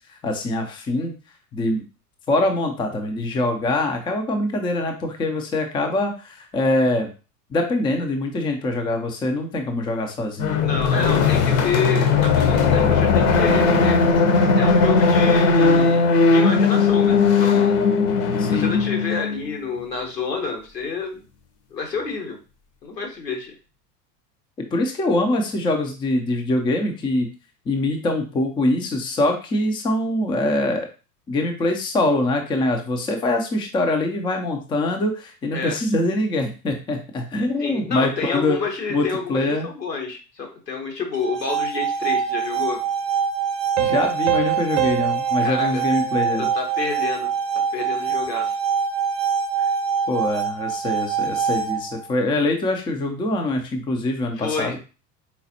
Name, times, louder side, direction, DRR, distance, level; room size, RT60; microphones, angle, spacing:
voice 1, 0.2-1.1 1.5-1.8 2.3-7.1 7.5-10.6 18.4-18.8 24.6-27.3 27.7-30.9 31.3-38.6 38.9-39.7 43.8-46.5 50.1-54.7, left 2 dB, 10° left, 4 dB, 0.5 m, -23 dB
sound 1, 10.4-19.6, left 4 dB, 45° left, 0.9 m, -18 dB
voice 2, 10.6-14.0 14.6-17.8 18.5-21.2 21.7-22.4 22.8-23.5 35.5-35.8 37.6-42.8 45.4-45.8 46.4-47.3 47.7-48.5 54.4-54.8, left 4 dB, 80° left, 2 dB, 1.3 m, -29 dB
sound 2, 41.1-52.1, right 6 dB, 30° right, 0.9 m, -24 dB
sound 3, 43.8-47.1, right 10 dB, 50° right, 0.6 m, -27 dB
4.2 x 4.0 x 2.7 m, 0.34 s
figure-of-eight pair, 80°, 49 cm